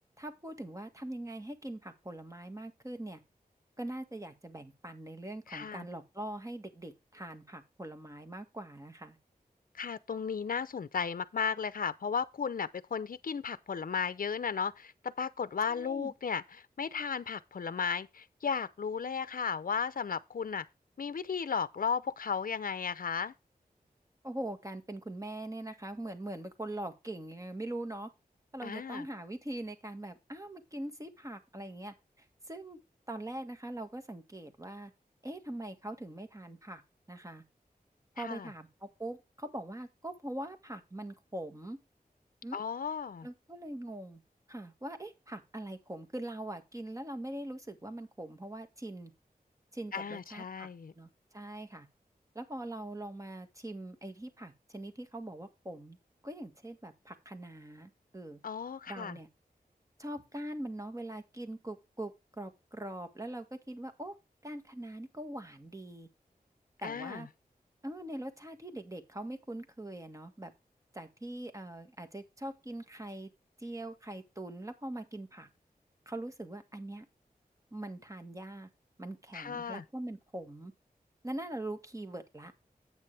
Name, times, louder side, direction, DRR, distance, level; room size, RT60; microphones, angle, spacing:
voice 1, 0.2-3.2 3.8-9.2 15.7-16.1 24.2-28.1 28.5-32.8 33.1-34.9 35.2-36.8 37.1-37.4 38.2-41.8 42.4-42.6 43.2-44.2 44.5-49.1 49.7-50.7 51.0-51.9 52.4-56.0 56.2-58.4 58.9-59.3 60.0-62.1 62.4-64.1 64.4-66.1 66.8-67.3 67.8-70.5 70.9-73.3 73.6-75.5 76.1-77.1 77.7-78.7 79.0-80.7 81.2-82.5, right 1 dB, 20° right, 1.8 m, -42 dB
voice 2, 5.5-5.8 9.7-20.7 21.0-23.3 28.6-29.1 38.2-38.5 42.5-43.3 49.9-50.9 58.4-59.2 66.8-67.2 79.3-79.8, left 6 dB, 65° left, 0.6 m, -35 dB
9.5 x 8.4 x 3.4 m
wide cardioid pair, 60°, 16 cm